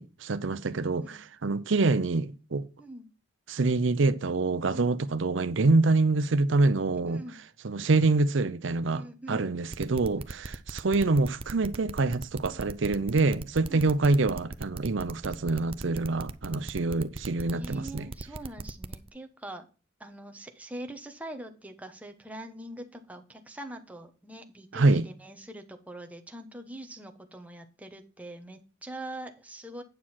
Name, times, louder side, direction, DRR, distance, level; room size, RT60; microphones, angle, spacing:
voice 1, 0.0-2.6 3.5-7.2 7.6-18.1 24.7-25.1, right 3 dB, 70° right, 0.6 m, -26 dB
voice 2, 4.6-4.9 7.1-7.4 8.9-9.5 10.1-10.2 13.7-13.9 17.5-19.6 20.0-29.8, right 1 dB, 10° right, 1.1 m, -43 dB
sound 1, 9.7-19.1, right 3 dB, 30° right, 0.5 m, -38 dB
9.4 x 6.2 x 4.3 m
head